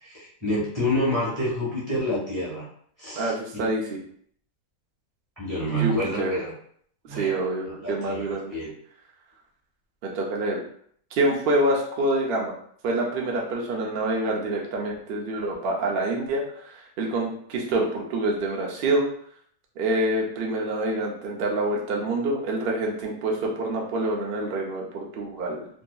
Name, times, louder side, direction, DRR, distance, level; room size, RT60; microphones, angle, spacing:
voice 1, 0.0-2.7 3.0-3.6 5.4-6.5 7.1-7.3 7.8-8.7, equal, 10° right, -8 dB, 1.2 m, -28 dB
voice 2, 3.1-4.0 5.7-6.3 7.1-8.5 10.0-10.6 11.1-12.6 12.8-19.1 19.8-25.7, right 1 dB, 85° right, -1 dB, 0.5 m, -26 dB
2.8 x 2.5 x 2.3 m, 0.62 s
omnidirectional pair, 1.8 m